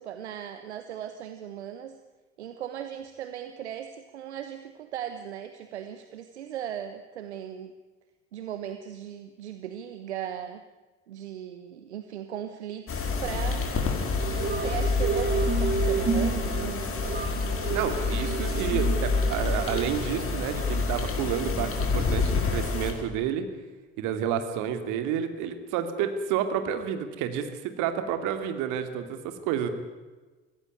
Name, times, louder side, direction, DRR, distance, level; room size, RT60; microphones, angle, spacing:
voice 1, 0.0-2.0 2.4-7.7 8.3-10.6 11.1-13.7 14.4-16.8, right 10 dB, 80° right, 9 dB, 1.2 m, -37 dB
sound 1, 12.9-22.9, left 4 dB, 40° left, 4.9 m, -28 dB
sound 2, 14.2-19.8, right 6 dB, 30° right, 2.5 m, -31 dB
voice 2, 17.7-23.5 24.0-29.7, right 9 dB, 65° right, 8 dB, 2.7 m, -30 dB
24.0 x 17.0 x 9.8 m, 1.3 s
figure-of-eight pair, 55°, 33 cm